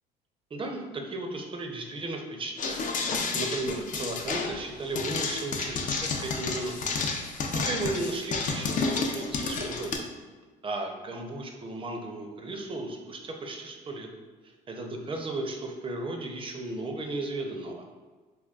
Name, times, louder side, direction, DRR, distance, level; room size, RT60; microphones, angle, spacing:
voice 1, 0.5-6.9 7.5-10.1 10.6-14.1 14.4-17.9, right 2 dB, 30° right, 3 dB, 0.5 m, -35 dB
sound 1, 2.6-10.0, left 4 dB, 45° left, 0.4 m, -31 dB
3.5 x 2.2 x 2.3 m, 1.4 s
supercardioid pair, 90°, 19 cm